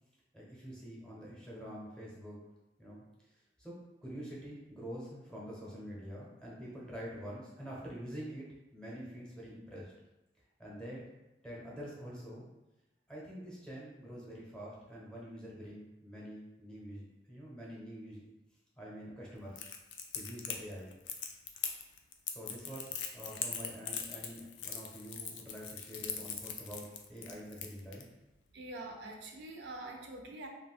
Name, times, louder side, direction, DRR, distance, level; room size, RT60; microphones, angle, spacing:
voice 1, 0.3-2.4 2.8-3.0 3.3-3.7 4.0-9.9 10.6-11.1 11.4-12.5 13.1-18.3 18.8-19.7 20.1-21.0 22.3-28.1, equal, 5° left, -5 dB, 0.6 m, -46 dB
Crackle, 19.6-28.0, left 7 dB, 90° left, 0.3 m, -40 dB
voice 2, 28.5-30.5, right 2 dB, 80° right, 2 dB, 0.4 m, -45 dB
2.3 x 2.1 x 3.5 m, 0.98 s
head